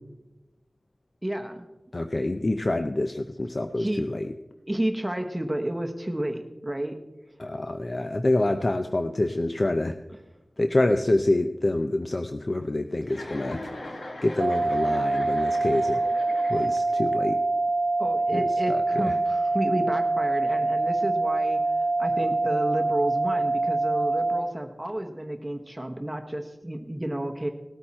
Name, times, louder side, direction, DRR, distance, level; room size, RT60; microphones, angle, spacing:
voice 1, 1.2-1.7 3.8-4.0 4.7-7.0 18.0-27.5, right 1 dB, 15° right, 4 dB, 1.1 m, -31 dB
voice 2, 1.9-4.3 7.4-10.0 10.6-13.6 14.2-16.0 16.5-17.4 18.3-19.2, left 2 dB, 50° left, 7 dB, 0.5 m, -26 dB
Chuckle chortle, 13.0-17.1, left 1 dB, 75° left, 1.6 m, -40 dB
sound 1, 14.4-24.4, right 2 dB, 75° right, 0.5 m, -25 dB
18.5 x 8.9 x 4.3 m, 1.1 s
wide cardioid pair, 55°, 0 cm